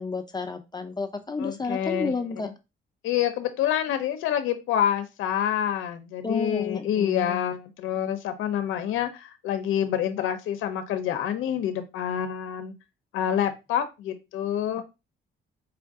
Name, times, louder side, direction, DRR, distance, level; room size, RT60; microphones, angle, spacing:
voice 1, 0.0-2.5 6.2-7.5, left 4 dB, 20° left, 6 dB, 0.6 m, -31 dB
voice 2, 1.4-2.1 2.4-2.5 3.0-12.7 13.1-14.8, left 10 dB, 85° left, 8 dB, 0.6 m, -27 dB
4.5 x 2.5 x 3.5 m, 0.25 s
cardioid pair, 90°, 20 cm